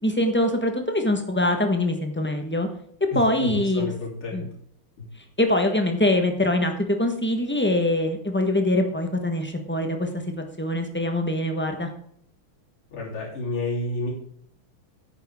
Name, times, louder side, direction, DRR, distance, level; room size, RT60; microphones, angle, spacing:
voice 1, 0.0-2.7 3.0-3.8 4.3-4.4 5.4-10.1 10.4-11.9, left 1 dB, 10° left, 4 dB, 0.6 m, -23 dB
voice 2, 3.1-4.5 5.0-5.1 12.9-14.1, left 2 dB, 75° left, -4 dB, 4.3 m, -30 dB
10.5 x 8.9 x 3.6 m, 0.66 s
omnidirectional pair, 2.4 m